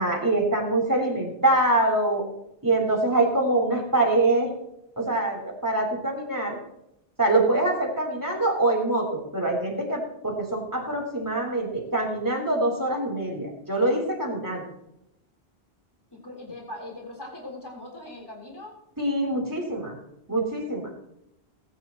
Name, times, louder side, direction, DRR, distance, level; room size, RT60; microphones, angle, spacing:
voice 1, 0.0-2.2 2.6-4.5 5.0-6.6 7.2-14.6 19.0-20.0 20.3-20.9, right 2 dB, 20° right, -1 dB, 3.8 m, -24 dB
voice 2, 16.2-18.7, left 1 dB, 20° left, -1 dB, 4.0 m, -40 dB
20.5 x 10.5 x 3.1 m, 0.83 s
omnidirectional pair, 1.1 m